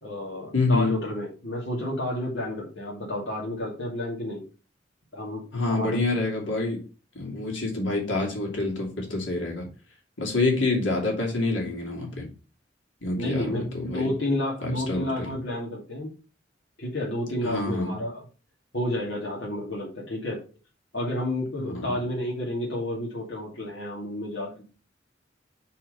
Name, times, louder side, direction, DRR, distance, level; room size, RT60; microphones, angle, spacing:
voice 1, 0.0-4.4 5.1-6.0 13.2-16.1 16.8-18.2 18.7-20.4 20.9-24.6, left 1 dB, 65° left, -3 dB, 2.4 m, -31 dB
voice 2, 0.5-0.9 5.5-6.8 7.1-9.7 10.2-12.3 13.0-14.1 14.6-15.3 17.4-18.0 21.6-22.0, left 2 dB, 85° left, -1 dB, 2.8 m, -27 dB
5.9 x 4.7 x 5.3 m, 0.34 s
head